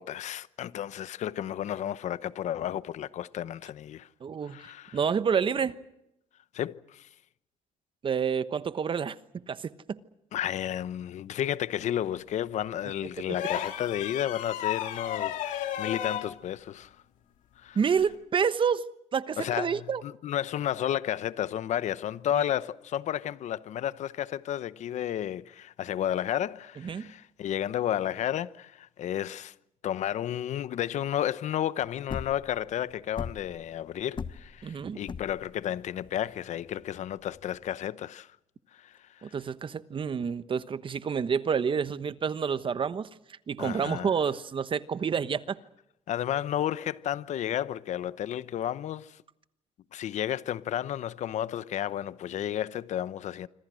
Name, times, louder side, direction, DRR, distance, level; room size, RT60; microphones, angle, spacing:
voice 1, 0.0-4.1 4.5-5.0 6.5-7.1 10.3-16.9 17.6-17.8 19.4-29.5 29.8-38.3 38.7-39.4 43.6-44.1 46.1-49.2 49.9-53.5, left 11 dB, 65° left, 0.9 m, -32 dB
voice 2, 4.2-4.6 4.9-5.7 8.0-9.2 9.5-10.0 17.7-20.0 22.3-22.4 26.8-27.1 34.6-35.0 39.2-43.1 43.5-45.6, right 6 dB, 40° right, 1.1 m, -28 dB
sound 1, 13.3-16.3 18.0-18.1, left 11 dB, 85° left, 2.6 m, -33 dB
sound 2, 31.8-37.7, left 6 dB, 40° left, 1.1 m, -40 dB
26.0 x 26.0 x 6.3 m
cardioid pair, 100°, 13 cm